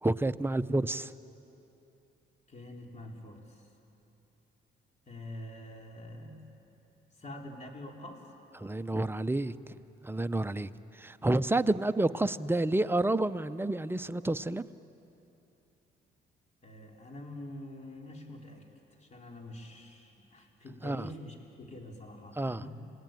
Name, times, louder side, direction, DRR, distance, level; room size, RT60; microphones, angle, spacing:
voice 1, 0.0-1.1 8.6-9.6 10.0-14.7 20.8-21.1 22.4-22.6, right 2 dB, 10° right, 11 dB, 0.6 m, -29 dB
voice 2, 2.5-3.7 5.1-6.5 7.1-8.3 16.6-22.9, left 1 dB, 35° left, 1 dB, 3.9 m, -46 dB
29.5 x 19.0 x 9.1 m, 3.0 s
cardioid pair, 90°, 20 cm